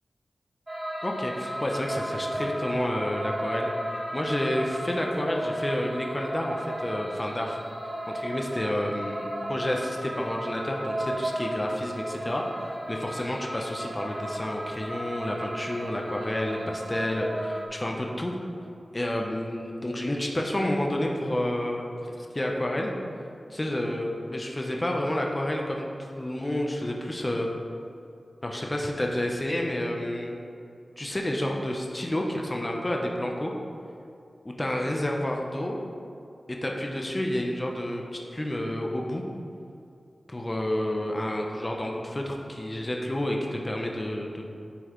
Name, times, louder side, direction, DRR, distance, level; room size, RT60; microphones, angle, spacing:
sound 1, 0.7-17.7, right 1 dB, 35° right, 1.3 m, -34 dB
voice 1, 1.0-7.6 8.1-18.3 18.9-23.0 23.5-27.5 28.4-30.4 31.0-33.5 34.4-35.8 36.5-39.2 40.3-44.5, left 1 dB, 25° left, 0 dB, 0.8 m, -30 dB
9.9 x 4.6 x 3.1 m, 2.5 s
cardioid pair, 55°, 0 cm